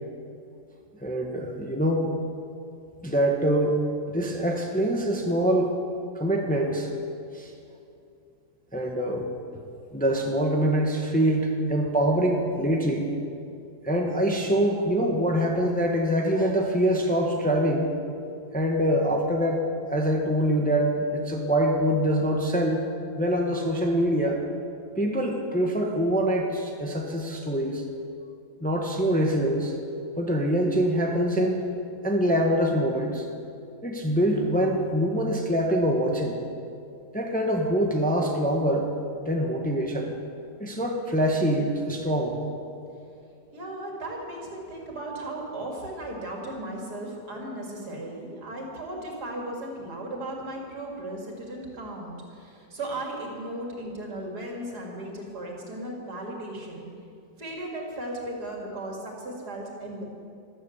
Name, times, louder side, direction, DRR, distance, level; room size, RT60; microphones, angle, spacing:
voice 1, 1.0-2.1 3.0-3.8 4.1-5.8 6.1-6.9 7.3-7.5 8.7-9.3 9.9-13.1 13.8-17.9 18.5-19.6 19.9-22.8 23.2-24.4 25.0-27.8 28.6-29.7 30.2-31.6 32.0-33.3 33.8-36.3 37.1-38.9 39.2-40.1 40.6-42.4, equal, 5° left, 1 dB, 1.2 m, -24 dB
voice 2, 43.5-56.9 57.4-60.0, right 1 dB, 70° right, 0 dB, 3.2 m, -36 dB
14.5 x 13.0 x 7.2 m, 2.5 s
omnidirectional pair, 1.8 m